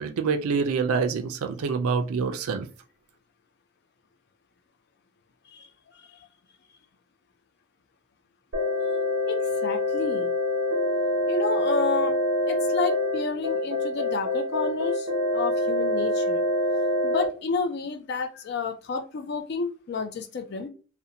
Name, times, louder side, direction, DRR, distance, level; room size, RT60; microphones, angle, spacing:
voice 1, 0.0-2.7, right 5 dB, 90° right, 0.4 m, -26 dB
sound 1, 8.5-17.3, left 1 dB, 65° right, 0.8 m, -25 dB
voice 2, 9.3-10.3 11.3-12.2 12.5-16.4 17.0-20.7, left 4 dB, 50° left, 0.4 m, -30 dB
2.6 x 2.1 x 2.7 m
head